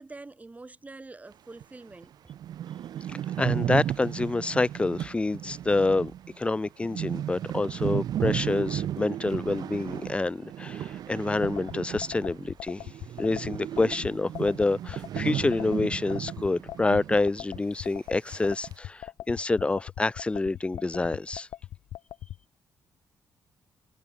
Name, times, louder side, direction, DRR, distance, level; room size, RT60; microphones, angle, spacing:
voice 1, 0.0-2.1, right 3 dB, 20° right, 6.0 m, -45 dB
sound 1, 1.6-1.7 2.0-2.1 2.3-12.5 12.8-17.3 17.6-17.7 18.3-18.7, right 11 dB, 75° right, 2.2 m, -34 dB
voice 2, 3.1-6.1 6.4-12.9 13.2-21.5, left 3 dB, 15° left, 0.3 m, -27 dB
sound 2, 11.4-22.4, left 13 dB, 80° left, 0.6 m, -39 dB
cardioid pair, 85°, 7 cm